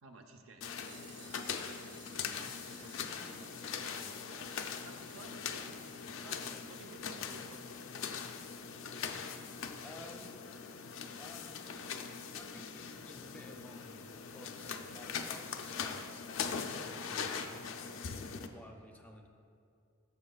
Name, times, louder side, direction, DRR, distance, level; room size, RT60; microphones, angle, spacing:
voice 1, 0.0-1.4 2.3-5.8 6.2-7.9, right 2 dB, 90° right, 5 dB, 0.7 m, -56 dB
sound 1, 0.6-18.5, left 6 dB, 70° left, 0.5 m, -41 dB
sound 2, 0.6-6.8 7.1-7.2 7.4-7.5 7.9-8.0 8.3-8.4, right 4 dB, 65° right, 1.8 m, -59 dB
voice 2, 9.8-10.5 11.2-11.6 12.3-19.3, left 1 dB, 5° left, 2 dB, 0.5 m, -54 dB
12.5 x 6.6 x 2.4 m, 2.5 s
head